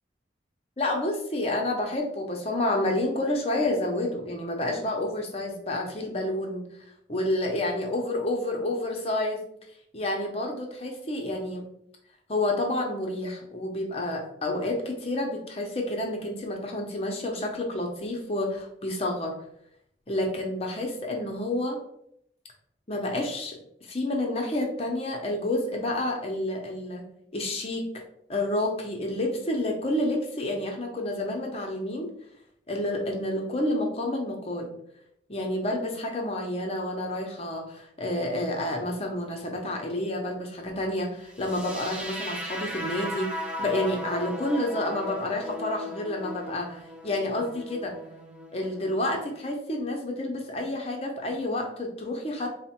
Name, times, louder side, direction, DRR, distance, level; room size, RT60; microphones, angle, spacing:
voice 1, 0.8-6.6 7.1-9.4 9.9-11.7 12.3-19.3 20.1-21.8 22.9-27.1 27.3-28.0 28.3-32.1 32.7-34.7 35.3-48.0 48.5-52.5, left 1 dB, 30° left, 1 dB, 0.7 m, -29 dB
sound 1, 41.4-49.4, left 1 dB, 5° right, 0.3 m, -37 dB
4.1 x 2.1 x 4.3 m, 0.73 s
head